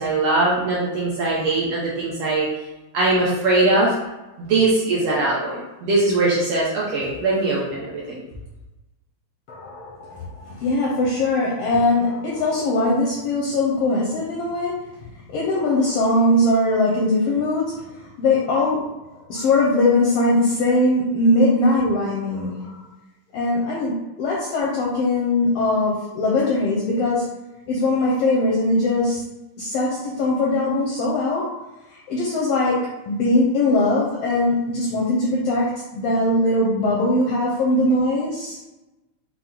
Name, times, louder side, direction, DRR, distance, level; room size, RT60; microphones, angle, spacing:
voice 1, 0.0-2.5 2.9-3.9 4.4-8.2, right 2 dB, 70° right, -5 dB, 1.5 m, -21 dB
voice 2, 9.5-14.7 15.3-18.8 19.1-22.8 23.3-27.3 27.7-29.2 29.6-31.5 31.9-38.6, left 2 dB, 80° left, -4 dB, 1.4 m, -21 dB
5.9 x 2.0 x 3.8 m, 1.0 s
omnidirectional pair, 3.4 m